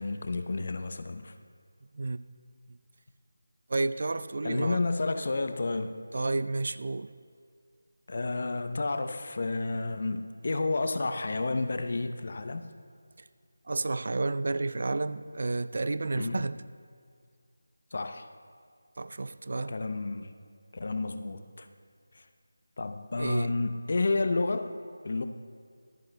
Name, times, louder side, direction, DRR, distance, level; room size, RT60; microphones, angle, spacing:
voice 1, 0.0-1.3 4.4-5.9 8.1-12.7 16.1-16.4 17.9-18.2 19.7-20.3 20.7-21.7 22.1-22.2 22.8-24.7 25.0-25.2, left 3 dB, 50° left, 0.7 m, -31 dB
voice 2, 3.7-4.8 6.1-7.1 13.7-16.6 19.0-19.7 23.1-23.5, right 3 dB, 55° right, 0.4 m, -31 dB
25.5 x 9.2 x 2.2 m
figure-of-eight pair, 165°, 0 cm